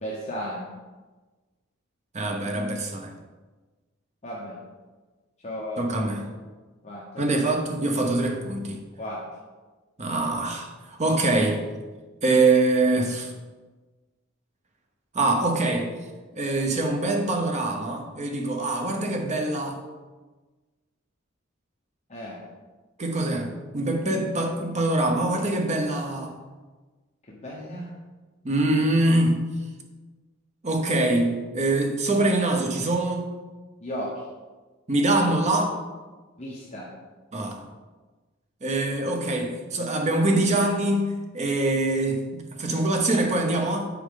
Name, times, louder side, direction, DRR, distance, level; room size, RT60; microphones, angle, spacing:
voice 1, 0.0-0.7 4.2-4.6 5.4-6.1 6.8-7.4 9.0-9.3 22.1-22.4 27.3-27.9 33.8-34.2 36.4-36.9, equal, 35° left, -5 dB, 1.1 m, -35 dB
voice 2, 2.1-3.1 5.8-6.3 7.2-8.8 10.0-11.6 12.2-13.3 15.1-15.9 16.3-19.8 23.0-26.3 28.4-29.4 30.6-33.2 34.9-35.7 37.3-37.6 38.6-43.9, right 2 dB, 35° right, 3 dB, 0.9 m, -24 dB
8.3 x 4.8 x 3.8 m, 1.3 s
head